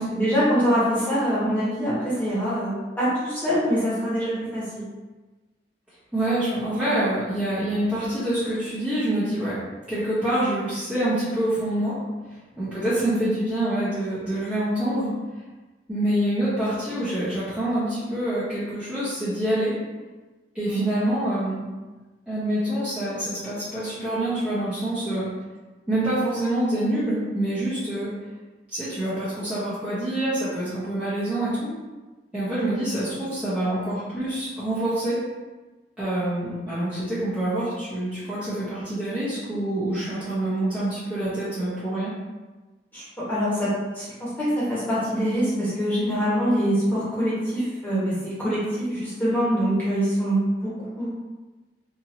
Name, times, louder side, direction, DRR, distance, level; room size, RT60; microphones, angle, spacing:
voice 1, 0.0-4.8 20.7-20.9 42.9-51.1, equal, 10° left, -10 dB, 1.1 m, -24 dB
voice 2, 6.1-9.6 9.9-12.0 12.6-15.1 15.9-19.7 20.5-21.6 22.3-25.3 25.9-28.1 28.7-31.7 32.3-35.2 36.0-42.1, right 1 dB, 5° right, -14 dB, 0.8 m, -26 dB
2.9 x 2.6 x 2.6 m, 1.2 s
head